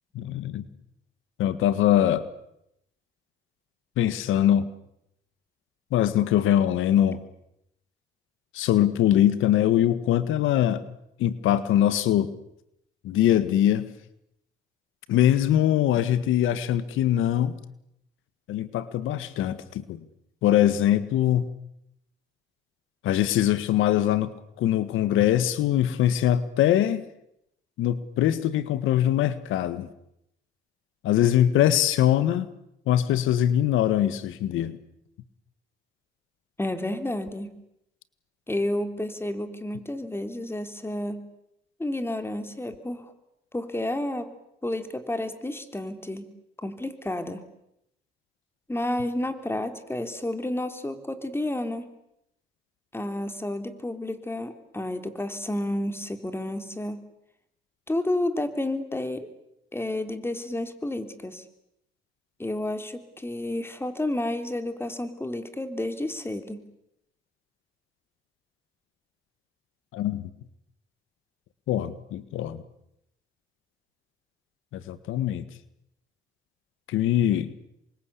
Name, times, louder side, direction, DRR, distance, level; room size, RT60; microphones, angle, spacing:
voice 1, 0.1-0.6 1.4-2.3 4.0-4.7 5.9-7.2 8.5-10.9 11.2-12.3 13.0-13.9 15.1-17.6 18.5-20.0 20.4-21.5 23.0-27.1 27.8-29.9 31.0-32.5 32.9-34.8 69.9-70.3 71.7-72.6 74.7-75.5 76.9-77.5, left 11 dB, 90° left, 14 dB, 1.7 m, -22 dB
voice 2, 36.6-37.6 38.5-41.3 41.8-43.1 43.5-44.3 44.6-46.3 46.6-47.4 48.7-51.9 52.9-57.0 57.9-59.3 59.7-61.4 62.4-66.6, left 1 dB, 10° left, 9 dB, 3.5 m, -31 dB
28.0 x 24.5 x 8.5 m, 0.79 s
cardioid pair, 90°, 20 cm